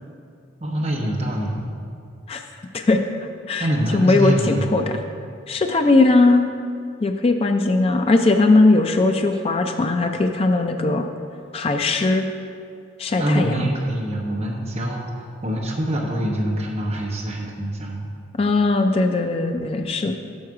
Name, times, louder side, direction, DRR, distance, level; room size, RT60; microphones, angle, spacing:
voice 1, 0.6-1.7 3.6-4.9 13.2-15.1 15.4-18.0 20.0-20.1, right 1 dB, 30° right, -2 dB, 0.9 m, -24 dB
voice 2, 3.9-5.0 5.5-6.5 7.0-11.1 11.5-12.3 13.0-13.5 18.4-20.1, left 2 dB, 30° left, 5 dB, 0.3 m, -19 dB
6.3 x 5.6 x 4.7 m, 2.4 s
head